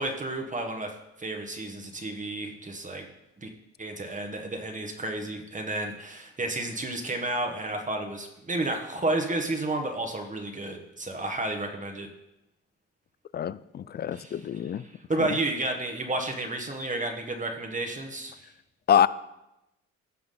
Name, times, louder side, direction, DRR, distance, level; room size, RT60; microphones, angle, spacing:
voice 1, 0.0-3.1 3.4-3.5 3.8-12.1 14.1-18.3, right 2 dB, 25° right, 1.3 m, -32 dB
voice 2, 13.3-14.8 15.2-15.3 18.9-19.1, left 9 dB, 35° left, 0.4 m, -25 dB
15.5 x 5.8 x 3.9 m
cardioid pair, 90°, 30 cm